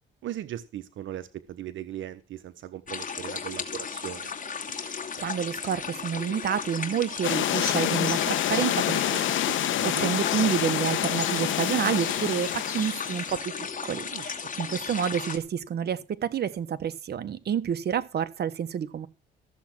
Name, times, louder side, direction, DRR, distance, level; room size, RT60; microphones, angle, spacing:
voice 1, 0.2-4.3 9.7-10.1 14.1-14.2 14.6-15.0, right 12 dB, 75° right, 1.1 m, -38 dB
sound 1, 2.9-15.4, left 6 dB, 40° left, 2.6 m, -35 dB
voice 2, 5.2-19.1, right 8 dB, 55° right, 1.3 m, -29 dB
sound 2, 7.2-13.4, left 12 dB, 75° left, 1.1 m, -27 dB
14.5 x 7.4 x 6.0 m
cardioid pair, 90°, 20 cm